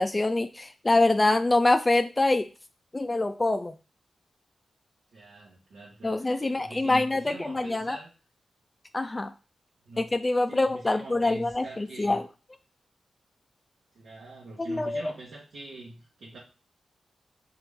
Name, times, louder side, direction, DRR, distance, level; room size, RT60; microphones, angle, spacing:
voice 1, 0.0-2.5 2.9-3.7 6.0-8.0 8.9-9.3 10.0-12.2 14.7-15.1, left 2 dB, 30° left, 9 dB, 0.3 m, -25 dB
voice 2, 5.1-8.1 9.9-10.1 10.5-12.2 13.9-16.4, right 2 dB, 80° right, -6 dB, 1.1 m, -44 dB
3.8 x 3.0 x 3.5 m, 0.32 s
cardioid pair, 45°, 0 cm